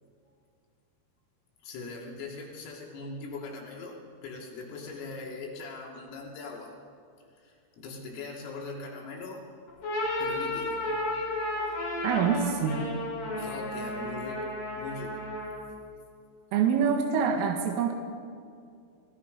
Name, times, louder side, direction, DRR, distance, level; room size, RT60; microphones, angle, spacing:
voice 1, 1.6-6.8 7.4-9.4 10.2-10.8 13.4-15.3, left 3 dB, 85° left, -2 dB, 5.6 m, -41 dB
sound 1, 9.7-15.7, left 1 dB, 55° left, 8.7 m, -33 dB
voice 2, 12.0-12.9 16.5-17.9, right 7 dB, 80° right, 2 dB, 4.1 m, -25 dB
29.5 x 20.0 x 5.4 m, 2.4 s
omnidirectional pair, 5.8 m